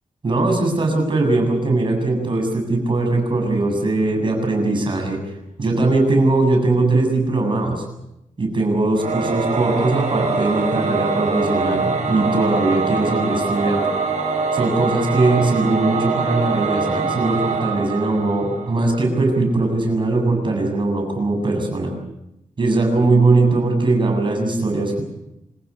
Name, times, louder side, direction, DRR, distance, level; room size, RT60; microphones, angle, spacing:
voice 1, 0.2-5.2 5.6-7.8 8.4-13.9 14.5-21.9 22.6-25.0, right 2 dB, 35° right, 2 dB, 7.4 m, -20 dB
Singing / Musical instrument, 8.9-19.0, right 4 dB, 60° right, 6.6 m, -23 dB
26.5 x 16.0 x 9.8 m, 0.87 s
wide cardioid pair, 160°, 13 cm